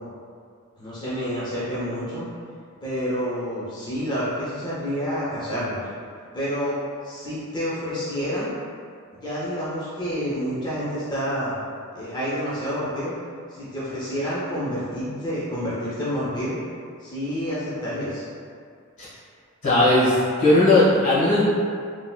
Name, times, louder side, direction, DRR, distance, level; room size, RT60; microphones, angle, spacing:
voice 1, 0.8-2.2 2.8-5.8 6.3-6.8 7.0-8.5 9.1-11.5 11.9-13.1 13.5-16.6 17.0-18.2, equal, 20° left, -10 dB, 0.6 m, -28 dB
voice 2, 19.6-21.4, left 2 dB, 60° left, -9 dB, 1.3 m, -17 dB
3.2 x 2.4 x 2.2 m, 2.2 s
head